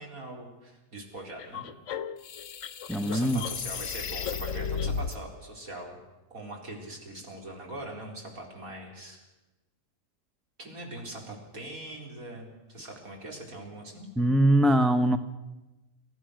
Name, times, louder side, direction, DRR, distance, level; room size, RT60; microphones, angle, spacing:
voice 1, 0.0-1.7 3.0-6.0 6.3-9.2 10.6-14.1, right 1 dB, 60° right, 0 dB, 4.8 m, -42 dB
sound 1, 1.4-5.2, left 6 dB, 60° left, 1.1 m, -34 dB
voice 2, 2.9-3.4 14.2-15.2, right 1 dB, ahead, 9 dB, 0.5 m, -22 dB
29.5 x 15.0 x 6.4 m, 1.1 s
omnidirectional pair, 1.6 m